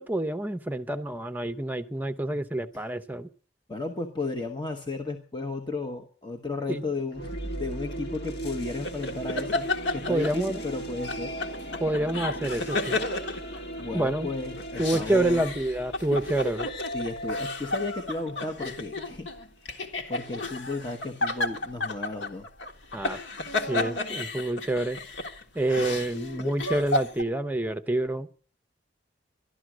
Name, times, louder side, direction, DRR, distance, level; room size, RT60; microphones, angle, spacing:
voice 1, 0.0-3.3 6.7-6.8 10.1-10.6 11.8-13.0 13.9-14.3 14.8-16.7 22.9-23.2 23.7-25.0 25.5-28.3, right 1 dB, 10° right, 0.8 m, -27 dB
voice 2, 3.7-11.3 13.8-15.5 16.9-19.3 19.6-22.5, left 3 dB, 25° left, 1.1 m, -34 dB
sound 1, 7.1-19.3, right 1 dB, 65° left, 1.9 m, -38 dB
sound 2, 8.8-10.7 11.1-14.1 14.6-27.2, left 2 dB, 80° left, 1.6 m, -32 dB
12.5 x 11.5 x 6.2 m
head